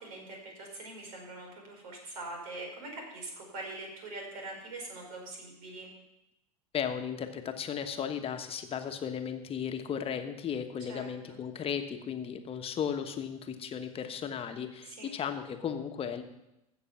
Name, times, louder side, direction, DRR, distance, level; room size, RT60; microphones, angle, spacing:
voice 1, 0.0-5.9 10.9-11.1 14.8-15.1, right 2 dB, 65° right, 1 dB, 4.5 m, -43 dB
voice 2, 6.7-16.2, left 8 dB, 30° left, 7 dB, 1.4 m, -35 dB
15.0 x 6.7 x 5.9 m, 0.89 s
figure-of-eight pair, 80°, 20 cm